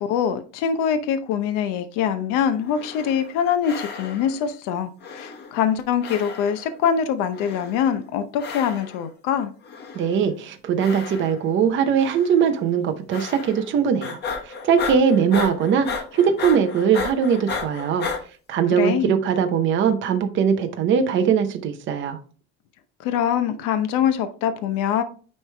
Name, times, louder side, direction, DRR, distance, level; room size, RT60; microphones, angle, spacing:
voice 1, 0.0-9.5 18.8-19.2 23.0-25.0, left 8 dB, 90° left, 0.8 m, -24 dB
sound 1, 2.6-3.4 3.6-4.4 5.0-5.8 6.0-6.8 7.3-8.0 8.4-9.0 9.6-10.3 10.8-11.6 12.0-12.4 13.1-13.7 14.0-18.2, left 5 dB, 35° left, 1.1 m, -33 dB
voice 2, 9.9-14.2 14.6-15.9 16.1-18.1 18.5-22.2, right 7 dB, 40° right, 0.8 m, -20 dB
9.6 x 3.3 x 3.3 m
cardioid pair, 165°, 31 cm